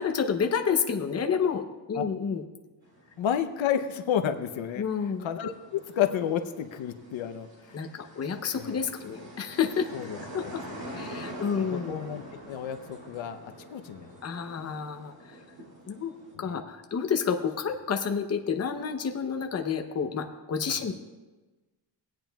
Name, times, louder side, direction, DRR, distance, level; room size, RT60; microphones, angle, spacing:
voice 1, 0.0-2.4 4.8-5.3 7.7-9.9 10.3-10.6 10.9-12.0 14.2-15.1 15.9-16.1 16.4-20.9, left 6 dB, 35° left, 5 dB, 0.7 m, -29 dB
sound 1, 2.8-16.3, equal, 55° right, 2.7 m, -45 dB
voice 2, 3.2-4.8 5.2-7.8 8.5-8.8 9.9-10.5 11.1-13.4 13.7-14.1 16.4-16.6 20.7-20.8, left 9 dB, 85° left, 8 dB, 0.7 m, -31 dB
19.0 x 8.9 x 2.3 m, 1.2 s
wide cardioid pair, 155°, 45 cm